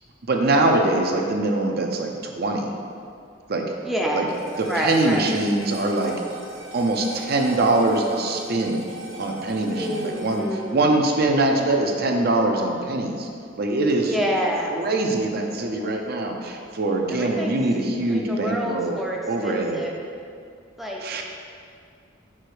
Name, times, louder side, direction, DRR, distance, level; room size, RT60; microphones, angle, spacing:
voice 1, 0.2-2.7 3.5-3.7 4.1-4.3 4.6-6.2 6.7-8.9 9.2-13.3 13.6-14.2 14.7-19.0 19.3-19.8 21.0-21.2, right 2 dB, 50° right, 2 dB, 0.6 m, -23 dB
voice 2, 3.8-4.3 4.7-5.3 9.6-10.9 14.1-14.8 17.1-17.6 18.1-19.9 20.8-21.2, equal, ahead, -2 dB, 0.5 m, -28 dB
sound 1, 4.3-12.8, right 2 dB, 70° right, 1.4 m, -39 dB
5.0 x 4.8 x 4.7 m, 2.3 s
head